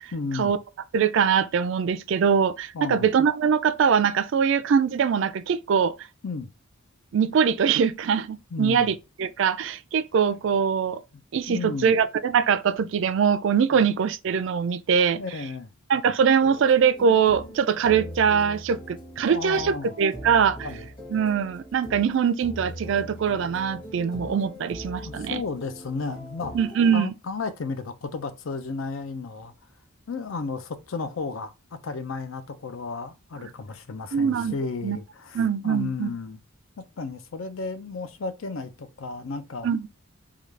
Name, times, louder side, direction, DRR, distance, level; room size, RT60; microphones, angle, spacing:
voice 1, 0.1-0.5 2.7-3.1 6.2-6.5 8.5-8.9 11.5-11.9 13.7-13.8 15.1-15.7 19.3-20.0 20.6-20.9 25.0-26.5 26.9-29.5 30.1-36.4 36.8-39.7, left 4 dB, 70° left, 0.5 m, -33 dB
voice 2, 0.9-5.9 7.1-11.0 11.3-15.2 15.9-20.6 21.1-25.4 26.5-27.1 34.1-34.5 34.8-35.0 35.3-36.1 39.6-39.9, right 7 dB, 60° right, 0.3 m, -22 dB
sound 1, 16.4-27.0, equal, 25° left, 0.9 m, -41 dB
3.7 x 2.3 x 3.2 m
head